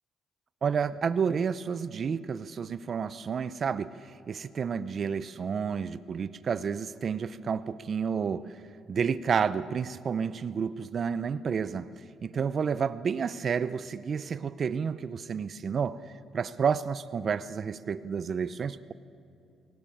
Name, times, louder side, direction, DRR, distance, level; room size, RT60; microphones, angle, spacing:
voice 1, 0.6-3.9 4.3-8.6 8.9-11.9 12.2-18.9, right 6 dB, 40° right, 16 dB, 0.6 m, -30 dB
23.0 x 17.5 x 8.7 m, 2.6 s
cardioid pair, 130°, 0 cm